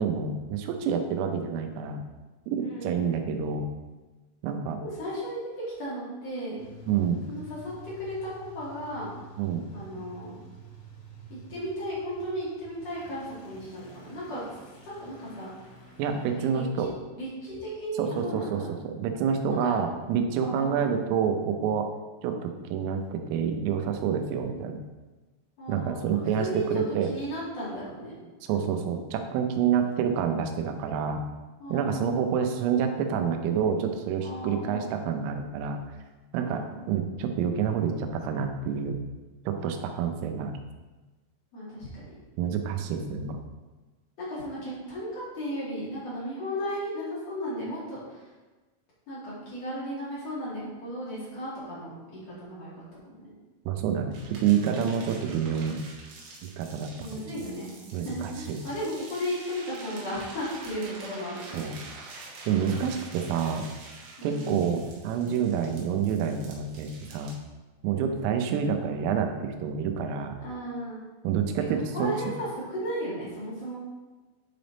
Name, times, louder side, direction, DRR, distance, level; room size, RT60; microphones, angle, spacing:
voice 1, 0.0-2.0 2.5-3.7 4.4-4.8 6.9-7.2 9.4-9.6 16.0-16.9 18.0-21.9 22.2-24.8 25.7-27.1 28.5-31.2 31.7-35.8 36.3-39.0 39.5-40.6 42.4-43.4 53.7-55.8 56.4-57.3 57.9-58.6 61.5-61.8 62.5-63.7 64.2-67.3 67.8-70.3 71.3-72.1, right 7 dB, 85° right, 5 dB, 3.3 m, -28 dB
voice 2, 2.6-3.1 4.8-6.6 7.3-9.1 9.7-10.3 11.3-14.4 14.8-15.5 16.3-16.9 17.2-18.7 19.5-19.7 20.4-20.9 25.6-26.7 27.0-28.1 31.6-32.3 34.2-34.9 36.4-36.9 41.5-42.0 44.2-48.3 49.1-53.3 57.0-61.7 64.2-64.6 67.9-68.3 70.4-71.1 71.9-73.8, equal, 50° left, -8 dB, 2.1 m, -35 dB
sound 1, 6.6-17.7, equal, 80° left, 4.8 m, -49 dB
sound 2, 54.1-67.3, right 3 dB, 70° right, 2.5 m, -46 dB
10.0 x 3.4 x 3.9 m, 1.2 s
omnidirectional pair, 5.8 m